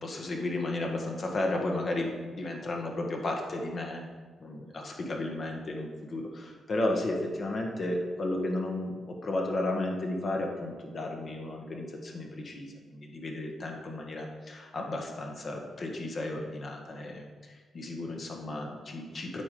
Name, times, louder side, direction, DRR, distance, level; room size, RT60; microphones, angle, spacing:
voice 1, 0.0-4.0 4.4-19.4, left 2 dB, 50° left, 1 dB, 1.5 m, -33 dB
8.3 x 3.8 x 5.0 m, 1.4 s
supercardioid pair, 55°, 0 cm